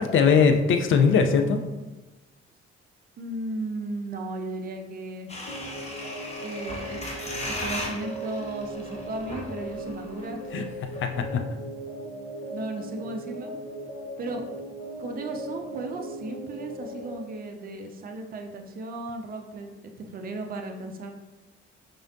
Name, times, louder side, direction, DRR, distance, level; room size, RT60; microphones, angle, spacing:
voice 1, 0.0-1.6 10.5-10.6 11.0-11.5, left 6 dB, 40° left, 6 dB, 0.5 m, -20 dB
voice 2, 3.2-5.3 6.4-7.0 7.4-10.5 12.5-13.5 14.2-14.5 15.0-19.7 20.0-21.1, right 2 dB, 25° right, 3 dB, 0.5 m, -35 dB
sound 1, 5.3-10.3 10.6-10.7 10.9-11.2, left 1 dB, 20° left, 0.9 m, -37 dB
sound 2, 5.5-17.2, right 1 dB, 60° left, 1.0 m, -38 dB
4.8 x 2.5 x 2.7 m, 1.1 s
figure-of-eight pair, 45°, 33 cm